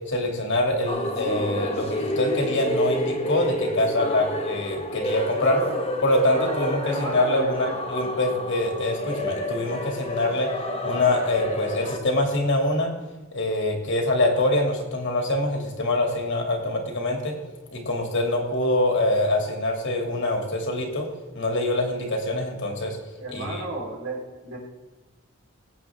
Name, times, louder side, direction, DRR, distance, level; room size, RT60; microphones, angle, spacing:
voice 1, 0.1-5.6 6.0-10.5 10.8-12.9 13.3-17.3 17.7-21.1 21.3-23.0 23.3-23.6, left 1 dB, 60° left, 1 dB, 2.6 m, -24 dB
sound 1, 0.9-12.0, left 1 dB, 30° left, 1.5 m, -29 dB
voice 2, 5.3-5.8 6.1-7.7 23.2-24.6, right 2 dB, 80° right, -3 dB, 4.2 m, -33 dB
19.5 x 8.4 x 3.7 m, 1.2 s
head